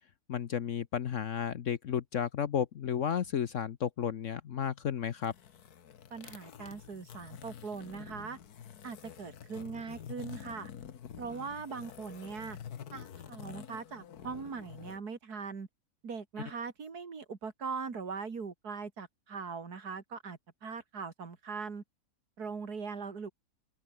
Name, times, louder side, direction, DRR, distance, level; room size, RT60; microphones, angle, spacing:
voice 1, 0.3-5.3, left 8 dB, 60° left, 1.1 m, -33 dB
sound 1, 5.1-15.0, left 8 dB, 85° left, 1.7 m, -48 dB
voice 2, 6.1-8.4 8.8-10.7 11.2-12.6 12.9-15.7 16.0-21.8 22.4-23.3, right 5 dB, 90° right, 2.9 m, -41 dB
omnidirectional pair, 1.6 m